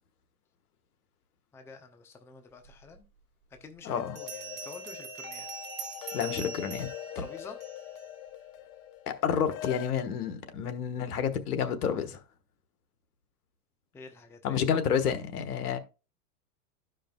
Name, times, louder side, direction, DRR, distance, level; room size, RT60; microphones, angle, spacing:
voice 1, 1.5-3.0 3.5-5.5 7.1-7.6 13.9-14.6, left 4 dB, 5° left, 0.5 m, -48 dB
Bell, 2.9-3.0 4.2-8.0, right 7 dB, 20° right, 1.9 m, -43 dB
voice 2, 3.8-4.2 6.1-6.9 7.1-7.2 9.1-12.2 14.4-15.8, left 7 dB, 80° left, 1.3 m, -29 dB
sound 1, 3.9-9.9, left 12 dB, 55° left, 0.7 m, -43 dB
12.5 x 5.2 x 2.3 m
hypercardioid pair, 125°, 45 cm